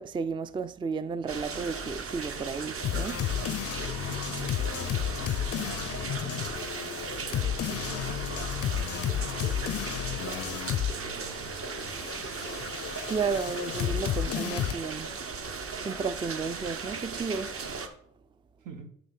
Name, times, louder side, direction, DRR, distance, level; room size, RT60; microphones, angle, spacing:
voice 1, 0.0-3.2 13.1-15.1 15.8-17.5, right 5 dB, 15° right, 0.3 m, -33 dB
sound 1, 1.3-17.9, right 4 dB, 45° right, 1.0 m, -37 dB
sound 2, 2.8-11.0 11.3-14.7, left 11 dB, 50° left, 0.4 m, -32 dB
voice 2, 3.9-6.6 7.4-12.6 18.6-18.9, right 4 dB, 85° right, 1.2 m, -47 dB
9.4 x 3.2 x 5.4 m
cardioid pair, 90°, 30 cm